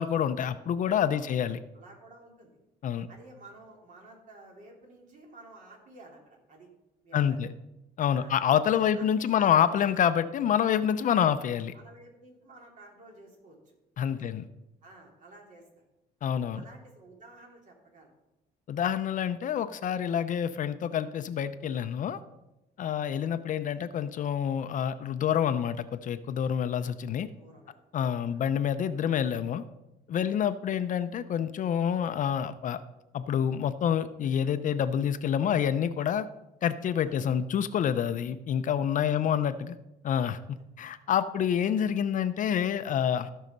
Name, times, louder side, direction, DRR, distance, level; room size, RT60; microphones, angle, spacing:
voice 1, 0.0-1.6 2.8-3.1 7.1-7.5 8.0-11.7 14.0-14.4 16.2-16.6 18.7-22.2 22.8-27.3 27.9-29.6 30.1-32.8 33.1-36.3 36.6-39.7 40.0-43.3, left 9 dB, 50° left, 12 dB, 0.6 m, -27 dB
voice 2, 1.1-1.4 1.7-2.6 3.1-6.7 7.0-7.4 8.1-8.4 8.9-9.5 11.7-13.8 14.2-14.3 14.8-15.7 16.3-18.1 19.9-20.1 22.8-23.1 27.4-27.8 28.2-28.5 30.2-30.4 37.0-37.3 39.1-39.5 41.0-41.1, right 2 dB, 50° right, 0 dB, 3.5 m, -53 dB
15.5 x 5.6 x 5.3 m, 0.94 s
cardioid pair, 110°, 17 cm